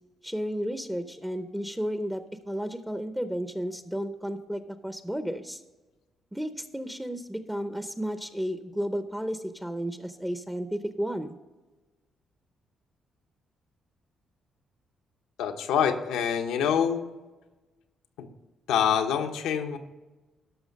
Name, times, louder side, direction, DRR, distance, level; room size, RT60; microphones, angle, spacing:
voice 1, 0.2-5.6 6.3-11.4, equal, 5° right, 9 dB, 0.6 m, -33 dB
voice 2, 15.4-17.0 18.2-18.3 18.7-19.8, left 8 dB, 90° left, 5 dB, 1.0 m, -26 dB
12.5 x 5.9 x 5.3 m, 1.2 s
cardioid pair, 90°, 0 cm